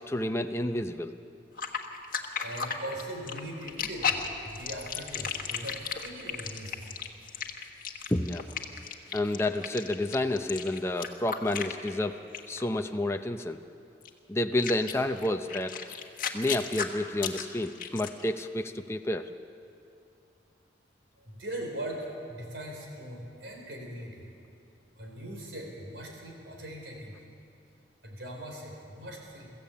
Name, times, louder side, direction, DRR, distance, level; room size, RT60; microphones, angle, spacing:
voice 1, 0.1-1.1 8.1-8.4 9.1-12.2 12.5-13.6 14.3-15.7 16.3-19.3, left 1 dB, 15° left, 5 dB, 0.6 m, -30 dB
sound 1, 1.6-12.1 12.3-12.6 14.0-14.1 14.6-18.3, left 7 dB, 50° left, 1.5 m, -35 dB
voice 2, 2.4-6.9 21.2-24.3 25.0-27.1 28.0-29.5, right 1 dB, 75° right, 0 dB, 4.4 m, -40 dB
22.5 x 14.5 x 8.5 m, 2.6 s
head